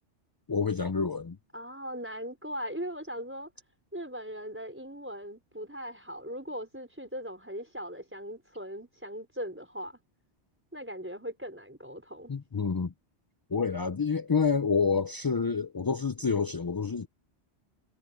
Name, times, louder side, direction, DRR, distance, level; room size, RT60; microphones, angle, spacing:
voice 1, 0.5-1.4 12.3-12.9 13.5-17.1, left 5 dB, 35° left, 0.3 m, -28 dB
voice 2, 1.5-3.5 3.9-10.0 10.7-12.3, equal, 10° right, 5.1 m, -39 dB
omnidirectional pair, 1.1 m